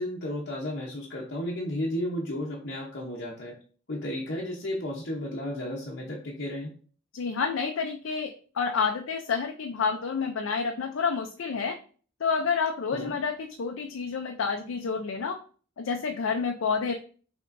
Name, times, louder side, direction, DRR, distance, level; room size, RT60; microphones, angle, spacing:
voice 1, 0.0-3.5 3.9-6.7 12.9-13.1, left 1 dB, 55° left, -3 dB, 0.8 m, -33 dB
voice 2, 7.1-11.8 12.2-15.4 15.8-16.9, left 5 dB, 75° left, 4 dB, 0.4 m, -29 dB
5.7 x 3.5 x 2.6 m, 0.42 s
head